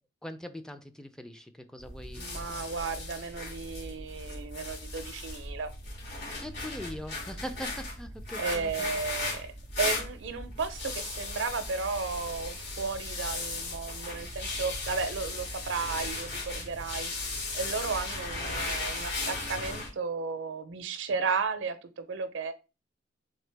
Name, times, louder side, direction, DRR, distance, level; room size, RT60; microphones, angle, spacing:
voice 1, 0.2-2.7 6.1-8.9, equal, 5° left, 0.3 m, -42 dB
sound 1, 1.8-19.9, left 2 dB, 60° left, 2.5 m, -37 dB
voice 2, 2.2-5.7 8.4-9.5 9.8-22.5, right 4 dB, 75° right, 0.5 m, -34 dB
3.8 x 3.2 x 3.3 m
head